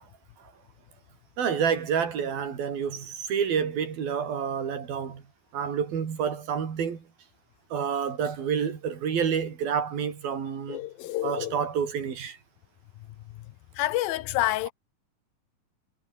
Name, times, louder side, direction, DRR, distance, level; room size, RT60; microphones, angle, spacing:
voice 1, 1.4-5.2 5.5-7.0 7.7-10.8 11.2-12.4, right 7 dB, 85° right, 5.4 m, -28 dB
voice 2, 10.7-11.6 13.8-14.7, left 16 dB, 90° left, 2.7 m, -28 dB
omnidirectional pair, 4.1 m